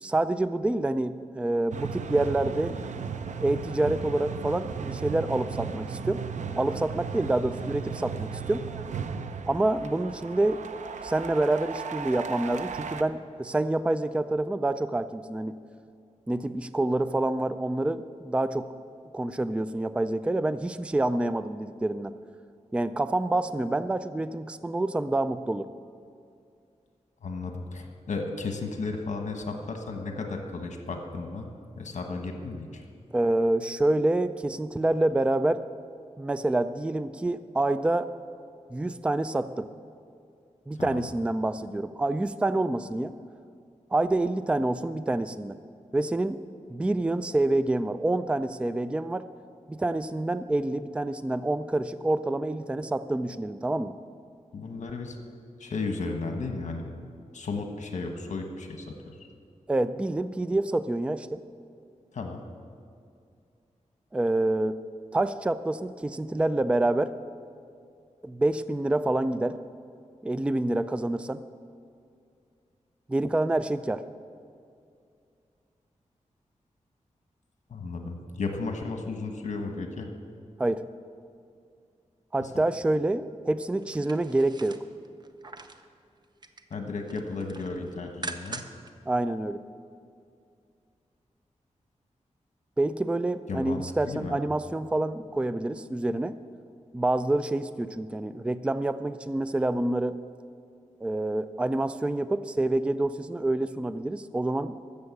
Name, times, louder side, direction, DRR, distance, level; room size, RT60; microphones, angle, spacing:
voice 1, 0.0-2.8 3.4-6.2 6.6-8.7 9.5-10.6 11.0-15.5 16.3-18.7 19.1-22.2 22.7-25.7 33.1-35.6 36.2-38.1 38.7-39.7 40.7-43.1 43.9-45.6 45.9-46.4 46.7-49.3 49.7-53.9 59.7-61.4 64.1-64.8 65.1-67.1 68.2-69.6 70.2-71.4 73.1-74.0 80.6-80.8 82.3-84.8 89.1-89.6 92.8-96.3 96.9-100.2 101.0-104.7, right 2 dB, 10° right, 12 dB, 0.3 m, -27 dB
sound 1, 1.7-13.0, right 6 dB, 80° right, 0.6 m, -36 dB
voice 2, 27.2-32.8 40.7-41.0 54.5-55.2 55.6-56.8 57.3-59.3 62.1-62.4 77.7-80.1 82.4-82.6 86.7-88.6 93.5-94.4, left 3 dB, 75° left, 4 dB, 1.3 m, -34 dB
sound 2, 83.8-85.9 86.2-86.8 87.1-88.9 89.3-89.4, right 3 dB, 35° right, 0.7 m, -42 dB
14.5 x 6.9 x 8.2 m, 2.4 s
wide cardioid pair, 145°, 12 cm